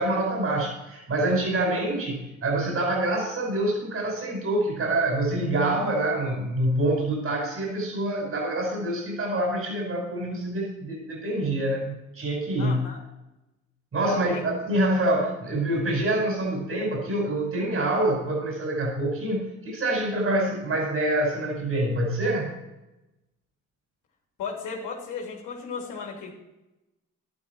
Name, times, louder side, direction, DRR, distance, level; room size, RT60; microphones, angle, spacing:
voice 1, 0.0-12.8 13.9-22.5, right 1 dB, 50° right, 0 dB, 5.2 m, -26 dB
voice 2, 12.6-13.0 14.0-14.4 24.4-26.3, left 5 dB, 90° left, -1 dB, 3.2 m, -35 dB
11.5 x 11.5 x 4.5 m, 0.96 s
cardioid pair, 90°, 30 cm